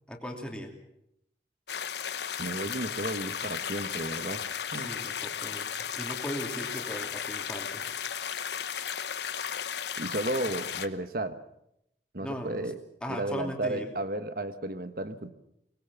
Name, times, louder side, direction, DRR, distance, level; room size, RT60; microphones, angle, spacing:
voice 1, 0.1-0.7 4.7-5.7 6.0-7.9 12.2-12.7 13.0-13.9, equal, 5° left, 2 dB, 2.8 m, -38 dB
sound 1, 1.7-10.9, left 8 dB, 75° left, 1.0 m, -35 dB
voice 2, 2.4-4.4 4.7-4.9 10.0-11.4 12.1-12.8 13.1-15.3, right 1 dB, 55° right, 11 dB, 1.3 m, -33 dB
22.5 x 20.0 x 7.1 m, 0.79 s
head